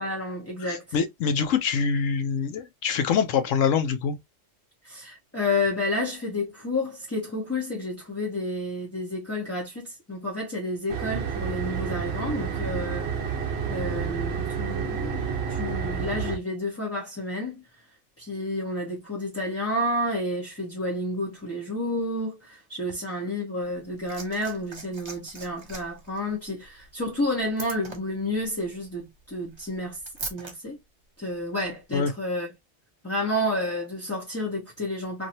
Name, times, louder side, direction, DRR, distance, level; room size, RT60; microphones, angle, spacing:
voice 1, 0.0-0.8 4.8-13.4 13.7-17.6 18.2-30.0 30.3-30.8 31.2-32.5 33.0-35.3, left 1 dB, 15° left, 0.6 m, -30 dB
voice 2, 0.6-4.2 31.9-32.1, left 6 dB, 75° left, 0.9 m, -25 dB
sound 1, 10.9-16.4, right 6 dB, 60° right, 0.9 m, -30 dB
Liquid, 23.6-30.5 31.6-31.7, right 3 dB, 30° right, 0.6 m, -42 dB
2.9 x 2.6 x 2.6 m
omnidirectional pair, 1.3 m